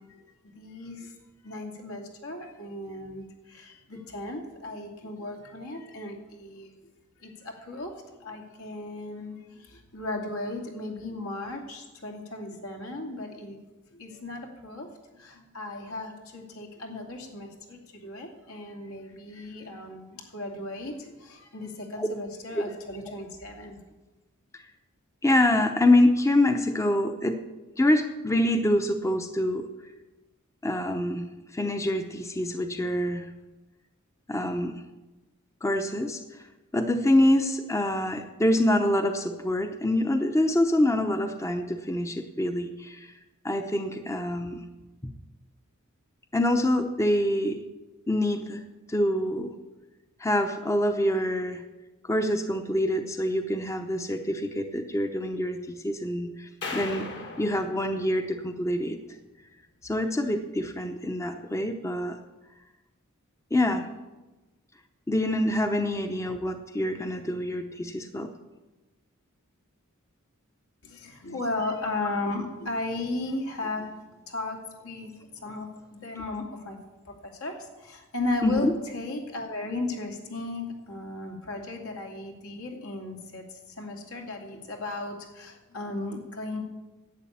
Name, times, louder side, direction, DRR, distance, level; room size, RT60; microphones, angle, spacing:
voice 1, 0.5-1.1 1.4-6.7 7.2-7.9 8.2-13.6 13.9-14.9 15.1-23.8 70.8-74.6 74.8-76.8 77.2-86.6, left 2 dB, 75° left, 2 dB, 2.5 m, -36 dB
voice 2, 25.2-27.4 27.8-29.7 30.6-31.3 31.5-33.3 34.3-34.7 35.6-36.2 36.7-43.1 43.4-44.6 45.0-45.1 46.3-47.6 48.1-48.6 48.9-49.5 50.2-51.6 52.0-57.1 57.4-59.0 59.8-62.2 63.5-63.8 65.1-68.3 78.4-78.7, left 1 dB, 15° left, 7 dB, 0.7 m, -25 dB
sound 1, 56.6-58.9, left 3 dB, 55° left, 2.0 m, -39 dB
11.0 x 8.3 x 8.6 m, 1.1 s
head